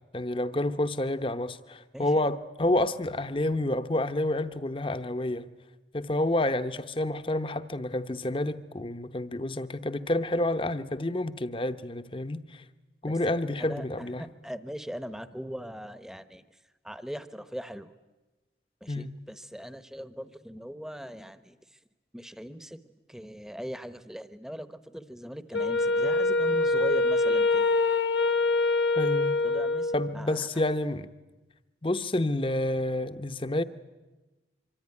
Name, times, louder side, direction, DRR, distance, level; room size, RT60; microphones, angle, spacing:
voice 1, 0.1-5.5 5.9-12.6 13.0-14.3 18.9-19.2 28.9-29.4 29.9-31.1 31.8-33.6, left 1 dB, 30° left, 0.8 m, -29 dB
voice 2, 13.1-16.4 16.8-17.9 18.8-21.6 22.1-22.8 23.1-27.7 29.4-30.5, equal, 5° right, 0.9 m, -40 dB
Wind instrument woodwind instrument, 25.5-30.2, left 3 dB, 80° left, 1.2 m, -25 dB
25.0 x 25.0 x 9.7 m
head